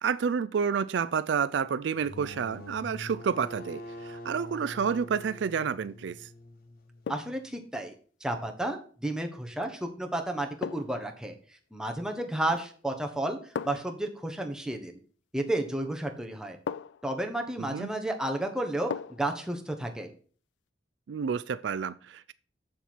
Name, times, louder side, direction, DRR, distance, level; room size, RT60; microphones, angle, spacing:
voice 1, 0.0-6.3 17.6-17.9 21.1-22.3, right 6 dB, 75° right, 0.4 m, -30 dB
sound 1, 1.9-7.5, left 1 dB, 50° left, 1.0 m, -45 dB
sound 2, 5.5-5.8 7.0-7.5 9.6-9.8 10.6-11.1 12.4-12.8 13.5-14.0 15.7-15.8 16.7-17.1 18.9-19.3 19.7-19.8, left 6 dB, 70° left, 0.3 m, -38 dB
voice 2, 7.1-7.9 8.2-11.3 11.7-15.0 15.3-16.6 17.0-20.1, right 1 dB, 5° right, 1.2 m, -32 dB
7.3 x 7.1 x 4.5 m
head